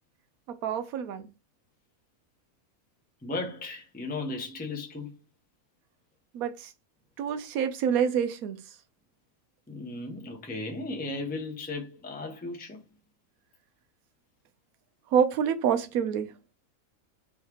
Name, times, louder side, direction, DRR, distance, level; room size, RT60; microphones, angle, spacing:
voice 1, 0.5-1.3 6.3-6.7 7.2-8.6 15.1-16.3, right 8 dB, 90° right, 1.1 m, -27 dB
voice 2, 3.2-5.1 9.7-12.8, left 2 dB, 10° left, 0.7 m, -35 dB
3.6 x 3.2 x 4.5 m
omnidirectional pair, 1.5 m